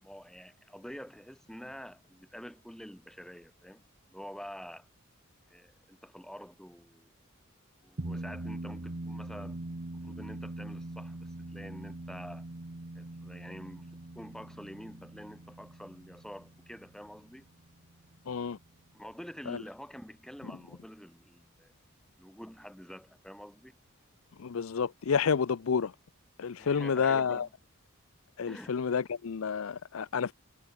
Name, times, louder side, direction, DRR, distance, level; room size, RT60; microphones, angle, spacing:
voice 1, 0.0-3.8 4.1-4.9 5.5-7.1 7.8-9.6 9.9-12.5 12.9-13.9 14.2-17.5 18.9-21.7 22.2-23.8 26.6-27.5 28.5-28.8, equal, 5° left, 2.0 m, -47 dB
sound 1, 8.0-18.7, right 2 dB, 50° right, 1.3 m, -43 dB
voice 2, 18.3-18.6 19.5-19.6 24.4-25.9 26.4-27.5 28.4-30.3, left 6 dB, 70° left, 0.5 m, -29 dB
head